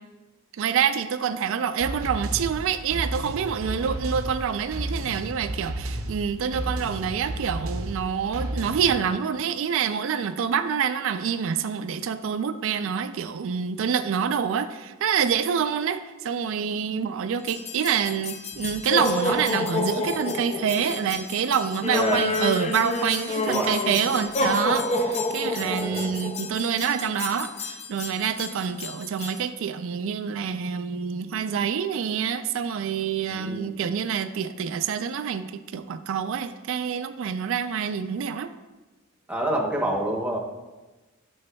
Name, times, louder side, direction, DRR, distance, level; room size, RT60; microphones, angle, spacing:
voice 1, 0.6-38.5, right 7 dB, 65° right, 10 dB, 0.3 m, -27 dB
sound 1, 1.8-9.0, right 1 dB, 85° right, 0.7 m, -33 dB
sound 2, 17.4-29.4, left 2 dB, 30° left, 0.5 m, -29 dB
voice 2, 21.9-22.2 23.5-23.8 25.6-26.1 33.3-33.7 39.3-40.4, right 1 dB, 5° right, 0 dB, 0.8 m, -28 dB
8.7 x 7.0 x 2.2 m, 1.2 s
head